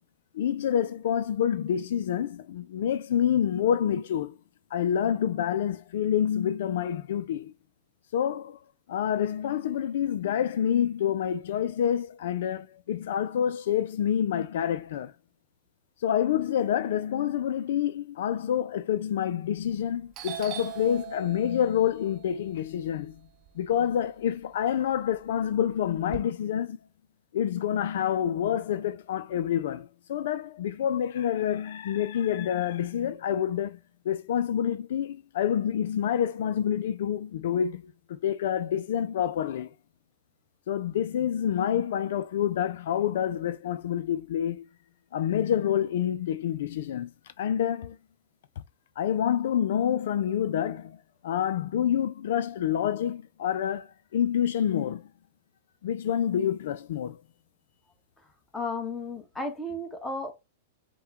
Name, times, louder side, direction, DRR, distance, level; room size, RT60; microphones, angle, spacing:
voice 1, 0.3-4.3 4.7-7.5 8.1-8.6 8.9-15.1 16.0-23.2 23.6-26.8 27.3-33.8 34.1-39.7 40.7-44.7 45.1-47.1 47.4-48.0 49.0-51.0 51.2-55.1 55.8-57.2, left 9 dB, 70° left, 0.4 m, -27 dB
Doorbell, 19.6-19.9 20.1-24.3 24.7-26.2, right 11 dB, 35° right, 0.6 m, -42 dB
voice 2, 58.5-60.3, left 2 dB, 10° left, 1.1 m, -33 dB
5.6 x 2.2 x 3.6 m
hypercardioid pair, 130°, 0 cm